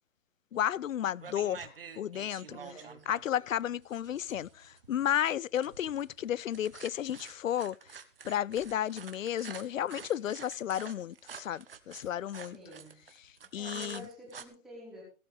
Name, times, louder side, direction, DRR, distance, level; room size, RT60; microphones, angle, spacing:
voice 1, 0.5-2.5 3.1-8.0 8.2-12.6 13.5-14.1, left 10 dB, 65° left, 0.5 m, -33 dB
sound 1, 0.6-0.9 1.2-14.4, right 6 dB, 40° right, 1.3 m, -48 dB
voice 2, 2.5-3.1 12.4-13.0 13.4-15.0, equal, ahead, 3.3 m, -49 dB
sound 2, 7.3-7.4 8.5-8.8 9.5-9.6 10.2-10.5 10.9-11.1 12.0-12.3, left 4 dB, 35° left, 1.4 m, -63 dB
17.0 x 12.5 x 3.5 m
hypercardioid pair, 180°, 42 cm